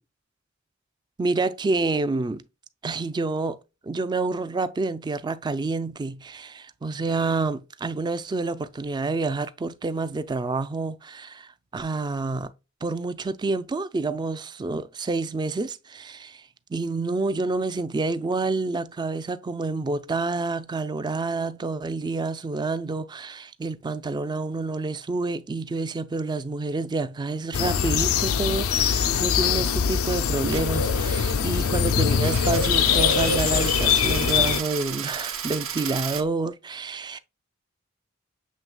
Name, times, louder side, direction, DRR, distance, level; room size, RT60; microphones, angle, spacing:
voice 1, 1.2-2.4 2.8-12.5 12.8-37.2, right 3 dB, 20° right, 0.3 m, -28 dB
sound 1, 27.5-34.6, left 7 dB, 85° left, 0.4 m, -22 dB
Coin (dropping), 30.4-36.2, right 8 dB, 70° right, 0.9 m, -34 dB
7.5 x 3.1 x 2.2 m
head